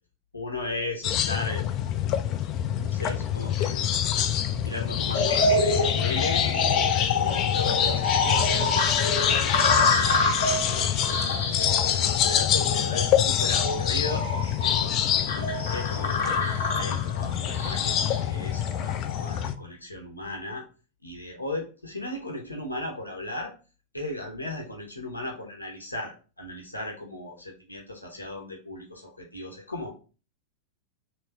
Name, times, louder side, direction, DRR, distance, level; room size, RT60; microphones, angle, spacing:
voice 1, 0.3-1.8 2.8-3.9 4.1-14.3 14.6-20.6 21.0-23.5 23.9-29.9, left 1 dB, 85° left, 1 dB, 0.9 m, -37 dB
sound 1, 1.0-19.6, left 10 dB, 35° left, 0.4 m, -26 dB
sound 2, 5.1-19.4, left 3 dB, 60° left, 0.9 m, -27 dB
3.2 x 2.9 x 4.7 m, 0.34 s
figure-of-eight pair, 90°, 0 cm